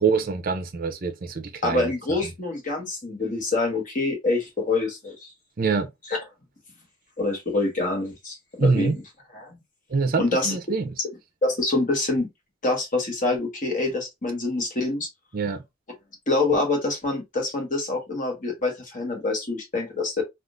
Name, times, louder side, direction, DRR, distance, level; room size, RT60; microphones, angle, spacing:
voice 1, 0.0-1.9 2.2-2.3 5.6-5.9 8.6-9.0 9.9-10.9 15.3-15.6, right 4 dB, 45° right, 0.5 m, -25 dB
voice 2, 1.6-5.3 7.2-8.9 9.3-9.5 10.2-10.6 11.4-12.3 12.6-15.1 16.3-20.2, left 2 dB, 40° left, 1.2 m, -26 dB
3.6 x 2.4 x 2.4 m
head